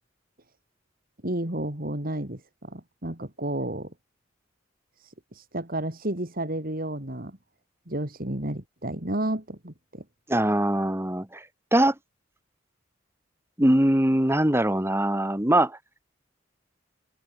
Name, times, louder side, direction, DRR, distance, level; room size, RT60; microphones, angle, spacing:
voice 1, 1.2-3.9 5.0-7.4 7.9-10.0, right 1 dB, 50° right, 3.5 m, -32 dB
voice 2, 10.3-11.4 11.7-11.9 13.6-15.8, right 1 dB, 15° right, 2.9 m, -22 dB
head